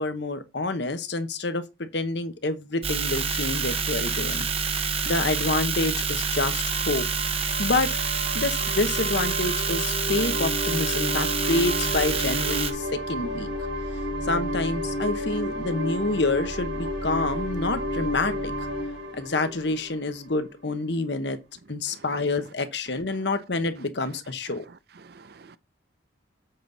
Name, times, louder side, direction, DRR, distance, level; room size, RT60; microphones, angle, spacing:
voice 1, 0.0-4.5 5.0-7.0 7.6-7.9 8.3-13.5 14.3-18.7 19.2-21.4 21.7-24.6, left 2 dB, 65° left, 1.1 m, -28 dB
sound 1, 2.8-12.7, right 5 dB, 30° right, 0.9 m, -27 dB
sound 2, 6.1-20.6, equal, 75° right, 4.4 m, -32 dB
voice 2, 25.0-25.6, right 4 dB, 55° right, 0.5 m, -50 dB
7.7 x 5.2 x 4.0 m
head